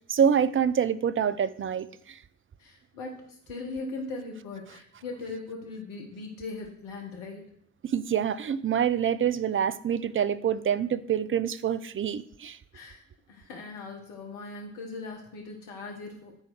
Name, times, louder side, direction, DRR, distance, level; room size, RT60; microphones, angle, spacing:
voice 1, 0.1-2.2 7.8-12.6, right 8 dB, 35° right, 16 dB, 0.7 m, -26 dB
voice 2, 2.6-7.5 12.7-16.4, left 3 dB, 75° left, 1 dB, 1.4 m, -39 dB
9.7 x 4.5 x 6.4 m, 0.68 s
hypercardioid pair, 45°, 33 cm